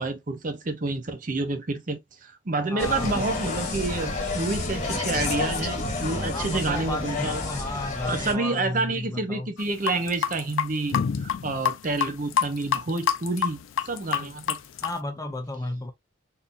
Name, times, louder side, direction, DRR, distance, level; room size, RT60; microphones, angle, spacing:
voice 1, 0.0-7.4 8.1-13.6 13.8-14.6, right 3 dB, 40° right, 0.6 m, -29 dB
voice 2, 2.7-3.2 6.3-9.5 14.8-15.9, left 2 dB, 15° left, 0.5 m, -33 dB
Insect, 2.8-8.3, left 3 dB, 35° left, 1.4 m, -30 dB
sound 1, 9.6-14.9, left 8 dB, 85° left, 0.5 m, -26 dB
3.7 x 2.7 x 2.5 m
head